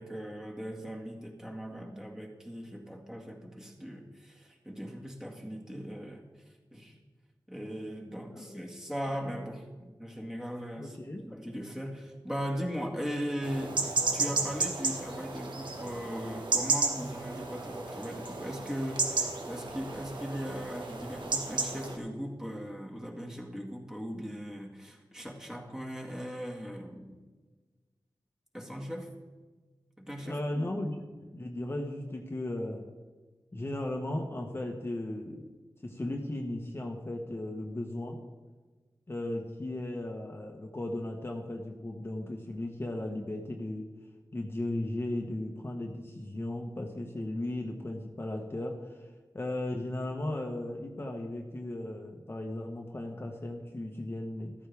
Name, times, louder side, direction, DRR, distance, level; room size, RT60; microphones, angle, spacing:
voice 1, 0.0-6.3 6.7-7.0 7.5-11.0 11.2-27.2 28.5-29.1 30.0-30.7, equal, 5° right, -1 dB, 2.0 m, -39 dB
voice 2, 8.3-8.6 10.8-11.2 30.2-32.9 33.5-35.4 35.8-38.2 39.1-43.9 44.3-49.0 49.3-54.5, left 1 dB, 30° left, 1 dB, 1.2 m, -36 dB
sound 1, 13.4-22.0, right 3 dB, 70° right, 1.6 m, -33 dB
14.0 x 14.0 x 3.5 m, 1.3 s
wide cardioid pair, 110°, 8 cm